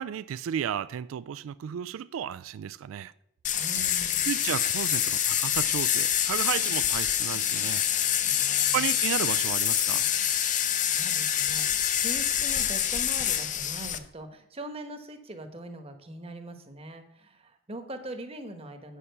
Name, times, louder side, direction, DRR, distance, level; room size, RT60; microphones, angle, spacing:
voice 1, 0.0-3.1 4.3-7.8 8.7-10.1, right 9 dB, 85° right, 0.3 m, -33 dB
sound 1, 3.4-14.0, left 10 dB, 40° left, 0.6 m, -26 dB
voice 2, 3.6-4.3 8.3-8.8 10.8-19.0, right 1 dB, 30° right, 1.1 m, -42 dB
8.6 x 6.6 x 6.7 m
head